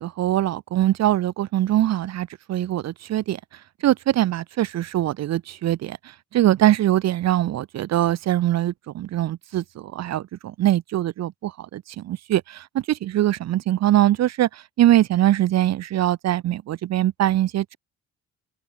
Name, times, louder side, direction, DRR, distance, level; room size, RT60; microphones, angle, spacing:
voice 1, 0.0-3.4 3.8-6.0 6.3-17.8, right 13 dB, 60° right, 0.6 m, -22 dB
open air
cardioid pair, 90°, 30 cm